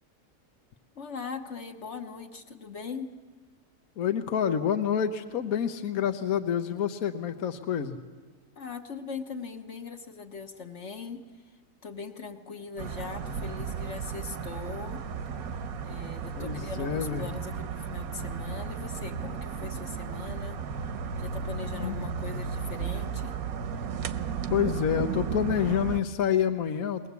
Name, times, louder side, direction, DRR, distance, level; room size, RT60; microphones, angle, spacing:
voice 1, 0.9-3.1 8.5-11.2 11.8-15.0 15.8-23.3, left 5 dB, 55° left, 4 dB, 1.5 m, -40 dB
voice 2, 4.0-8.0 16.4-17.3 21.7-22.0 24.5-27.1, left 8 dB, 75° left, 7 dB, 1.4 m, -28 dB
sound 1, 12.8-26.0, right 6 dB, 80° right, 1.3 m, -34 dB
22.0 x 19.0 x 8.2 m, 1.3 s
omnidirectional pair, 1.5 m